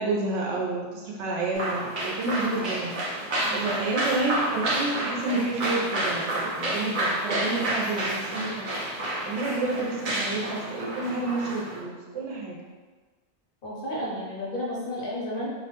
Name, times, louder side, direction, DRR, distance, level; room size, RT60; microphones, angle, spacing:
voice 1, 0.0-2.9 3.5-12.6, right 3 dB, 80° right, -3 dB, 0.9 m, -30 dB
sound 1, 1.5-11.8, right 1 dB, 55° right, 0.7 m, -30 dB
voice 2, 13.6-15.5, equal, 60° left, -5 dB, 0.7 m, -32 dB
2.3 x 2.1 x 2.8 m, 1.4 s
omnidirectional pair, 1.2 m